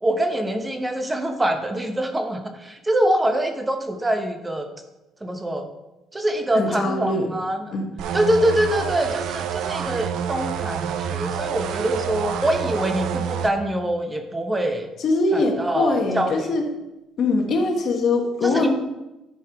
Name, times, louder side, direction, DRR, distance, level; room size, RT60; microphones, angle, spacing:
voice 1, 0.0-4.7 5.2-5.7 6.1-7.7 8.1-14.9 15.3-16.5 18.4-18.7, right 1 dB, 15° right, 6 dB, 0.9 m, -24 dB
voice 2, 6.5-7.3 7.7-7.9 15.0-16.7 17.2-18.7, left 3 dB, 55° left, 3 dB, 1.6 m, -22 dB
sound 1, 8.0-13.5, right 8 dB, 75° right, 0.6 m, -28 dB
10.5 x 5.5 x 4.5 m, 0.99 s
cardioid pair, 105°, 0 cm